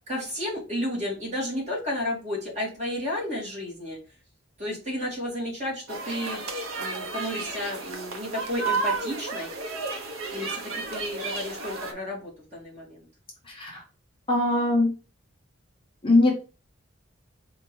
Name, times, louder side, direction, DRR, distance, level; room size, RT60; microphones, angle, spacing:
voice 1, 0.1-4.0 4.6-6.4 6.8-9.5 10.3-13.0, left 1 dB, 35° right, -4 dB, 1.9 m, -32 dB
sound 1, 5.9-11.9, right 4 dB, 85° right, 0.7 m, -32 dB
voice 2, 14.3-14.9 16.0-16.4, left 2 dB, 25° left, -2 dB, 0.8 m, -20 dB
4.3 x 2.6 x 3.1 m, 0.34 s
head